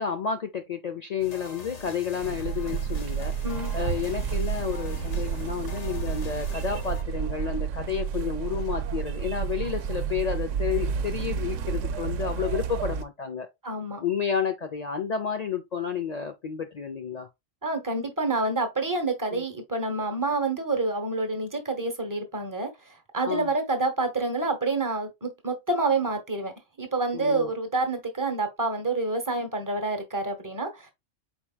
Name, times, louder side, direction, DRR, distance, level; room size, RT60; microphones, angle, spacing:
voice 1, 0.0-3.3 3.7-13.5 14.0-17.3 19.3-19.4 23.2-23.5 27.1-27.5, left 7 dB, 65° left, 0.4 m, -31 dB
sound 1, 1.2-7.0, left 3 dB, 40° left, 0.7 m, -43 dB
sound 2, 2.2-13.0, right 7 dB, 90° right, 0.9 m, -30 dB
voice 2, 3.4-3.7 13.6-14.0 17.6-26.5 26.8-30.9, right 3 dB, 15° right, 0.9 m, -28 dB
4.5 x 4.4 x 2.2 m
omnidirectional pair, 1.3 m